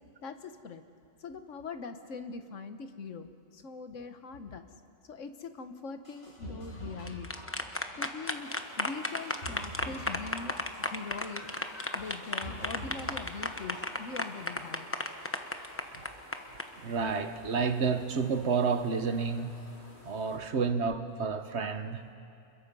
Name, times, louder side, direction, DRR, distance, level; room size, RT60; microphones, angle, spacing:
voice 1, 0.2-0.8 1.2-4.7 5.1-7.3 8.0-8.5 8.8-10.5 10.9-11.4 11.9-14.9, left 4 dB, 70° left, 8 dB, 1.5 m, -42 dB
sound 1, 6.0-7.1 7.4-8.0 8.5-8.6 9.0-10.1 10.4-11.0 11.5-11.6 12.0-13.1 13.4-14.0 14.3-14.4, equal, 50° left, 7.7 m, -44 dB
sound 2, 6.9-16.6, left 1 dB, 10° left, 0.9 m, -34 dB
sound 3, 8.2-20.4, equal, 85° left, 5.6 m, -55 dB
voice 2, 16.8-19.5 20.0-22.0, right 5 dB, 55° right, 9 dB, 1.3 m, -30 dB
28.5 x 22.0 x 5.5 m, 2.5 s
omnidirectional pair, 1.4 m